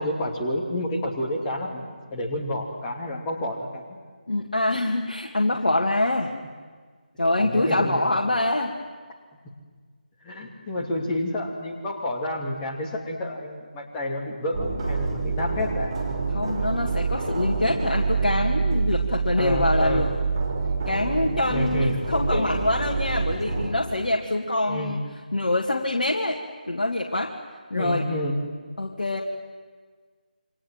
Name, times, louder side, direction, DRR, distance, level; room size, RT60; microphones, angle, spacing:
voice 1, 0.0-4.0 7.3-8.0 10.2-15.9 19.4-20.1 21.5-22.5 24.6-25.0 27.7-28.4, left 1 dB, 10° left, -2 dB, 2.7 m, -29 dB
voice 2, 4.3-6.3 7.2-8.7 16.3-20.1 20.9-25.0 25.3-26.4 26.7-27.3 27.7-28.0 28.8-29.2, left 2 dB, 55° left, 0 dB, 2.1 m, -25 dB
sound 1, 14.5-23.7, right 4 dB, 30° right, 5.2 m, -26 dB
28.5 x 24.5 x 7.7 m, 1.5 s
figure-of-eight pair, 160°, 5 cm